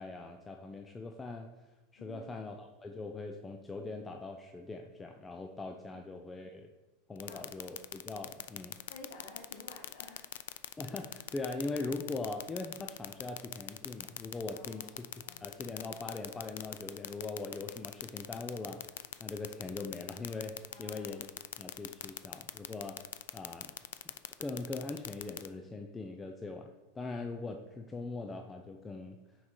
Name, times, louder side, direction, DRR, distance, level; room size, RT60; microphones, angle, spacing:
voice 1, 0.0-6.7 7.1-8.8 10.8-18.8 19.2-21.3 21.6-23.0 23.3-23.7 24.0-24.1 24.4-29.2, left 3 dB, 10° left, 4 dB, 0.3 m, -41 dB
voice 2, 2.0-2.5 7.2-7.4 8.9-10.3 14.5-15.5 20.7-21.2, left 2 dB, 65° left, -2 dB, 1.2 m, -52 dB
sound 1, 7.2-25.5, left 12 dB, 90° left, 0.3 m, -40 dB
6.2 x 4.6 x 3.7 m, 1.1 s
supercardioid pair, 165°, 0 cm